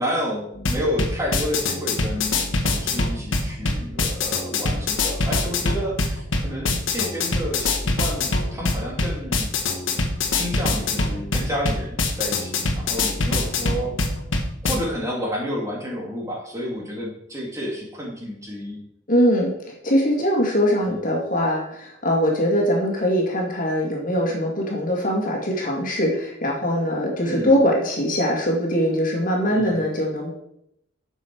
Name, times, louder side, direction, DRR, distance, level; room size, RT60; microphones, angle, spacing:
voice 1, 0.0-9.5 10.3-14.0 14.6-18.8 20.8-21.1 27.2-27.5 29.5-29.8, equal, 15° right, -2 dB, 2.4 m, -30 dB
sound 1, 0.6-14.7, left 3 dB, 80° left, 1.4 m, -24 dB
voice 2, 19.1-19.5 19.8-30.3, equal, 45° left, -1 dB, 2.2 m, -22 dB
10.0 x 6.5 x 4.6 m, 0.75 s
head